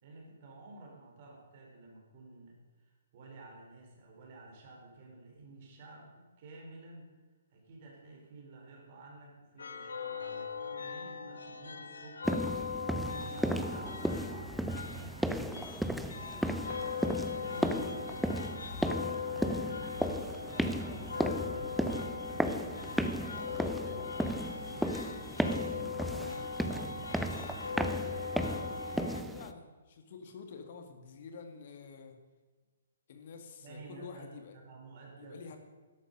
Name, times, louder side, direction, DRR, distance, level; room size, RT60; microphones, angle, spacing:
voice 1, 0.0-7.1 7.5-12.7 13.2-18.7 19.2-25.0 25.4-27.8 33.6-35.6, right 2 dB, 45° right, 0 dB, 4.6 m, -52 dB
sound 1, 9.6-29.2, left 5 dB, 70° left, 1.2 m, -40 dB
sound 2, 12.2-29.5, right 1 dB, ahead, 0.7 m, -35 dB
voice 2, 29.3-32.2 33.1-34.6 35.2-35.6, left 5 dB, 50° left, 6 dB, 2.1 m, -48 dB
12.0 x 11.5 x 6.7 m, 1.3 s
figure-of-eight pair, 125°, 0 cm